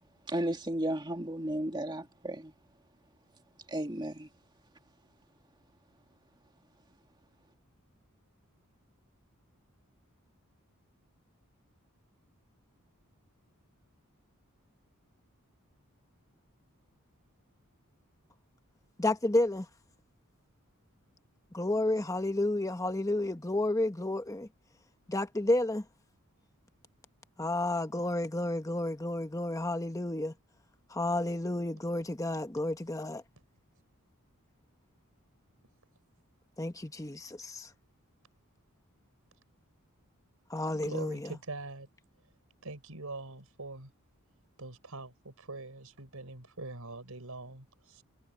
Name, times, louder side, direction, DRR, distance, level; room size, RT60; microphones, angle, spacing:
voice 1, 0.3-2.5 3.7-4.3, right 1 dB, 20° right, 1.8 m, -34 dB
voice 2, 19.0-19.7 21.5-24.5 25.1-25.8 27.4-30.3 30.9-33.2 36.6-37.7 40.5-41.2, left 1 dB, 15° left, 1.1 m, -31 dB
voice 3, 40.7-41.9 42.6-43.9 44.6-48.0, right 2 dB, 85° right, 4.4 m, -43 dB
head